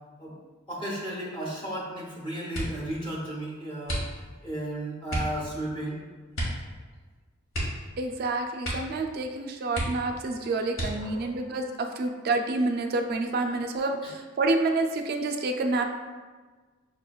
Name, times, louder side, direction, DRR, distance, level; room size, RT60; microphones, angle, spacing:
voice 1, 0.7-4.1 4.4-6.0 10.9-11.6 14.0-14.1 15.7-15.8, right 1 dB, 25° left, -6 dB, 0.8 m, -34 dB
sound 1, 2.5-2.9 3.8-4.5 5.1-5.4 6.3-6.7 6.9-7.0 7.5-8.2 8.6-9.0 9.3-9.4 9.7-10.2 10.7-11.3 12.0-12.6 13.0-13.4, equal, 80° left, 1.2 m, -33 dB
voice 2, 8.0-15.8, right 2 dB, 50° right, 4 dB, 0.3 m, -28 dB
5.8 x 3.0 x 2.3 m, 1.4 s
head